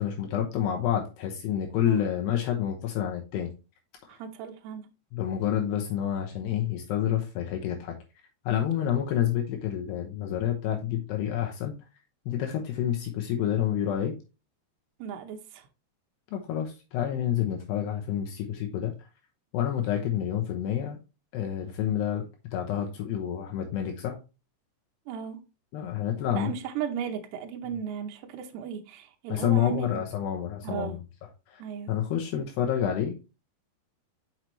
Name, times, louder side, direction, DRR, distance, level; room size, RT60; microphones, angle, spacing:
voice 1, 0.0-3.5 4.0-4.2 5.1-8.0 8.4-11.7 12.3-14.2 16.3-19.1 19.5-21.0 21.3-24.2 25.7-26.5 29.3-31.0 31.5-31.6 31.9-33.3, left 10 dB, 75° left, 3.0 m, -28 dB
voice 2, 4.1-4.9 15.0-15.7 25.1-25.4 26.3-30.0 30.6-31.0 31.6-31.9, right 8 dB, 75° right, 2.8 m, -35 dB
6.7 x 6.0 x 3.1 m
omnidirectional pair, 5.1 m